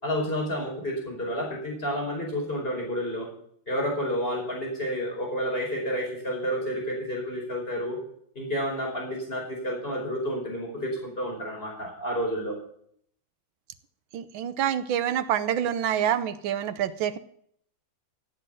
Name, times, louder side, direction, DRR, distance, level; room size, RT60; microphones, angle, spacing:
voice 1, 0.0-3.3 3.7-8.0 8.4-12.5, equal, 25° left, -1 dB, 5.2 m, -30 dB
voice 2, 14.1-17.2, right 9 dB, 80° right, 13 dB, 1.6 m, -27 dB
16.0 x 7.9 x 7.6 m, 0.66 s
omnidirectional pair, 2.2 m